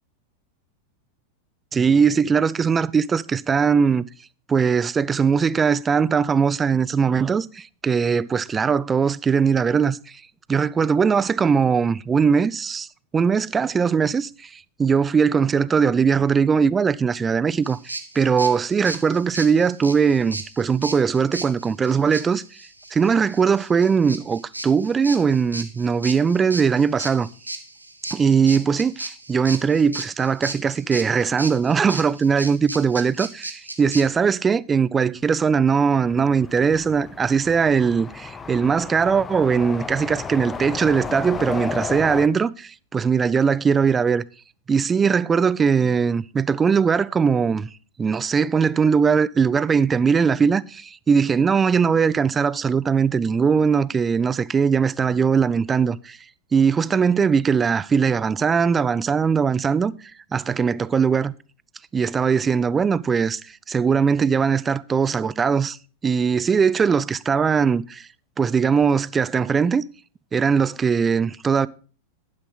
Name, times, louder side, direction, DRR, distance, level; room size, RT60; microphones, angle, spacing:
voice 1, 1.7-4.1 4.5-10.2 10.5-12.9 13.1-22.4 22.9-27.3 28.1-44.2 44.7-47.7 48.0-56.2 56.5-59.9 60.3-61.3 61.9-65.8 66.0-68.1 68.4-69.8 70.3-71.7, right 6 dB, 20° right, 0.4 m, -20 dB
sound 1, 17.6-34.0, right 2 dB, 85° right, 1.4 m, -35 dB
sound 2, 36.1-42.3, left 5 dB, 15° left, 0.8 m, -33 dB
11.0 x 9.9 x 3.9 m
figure-of-eight pair, 90°, 0 cm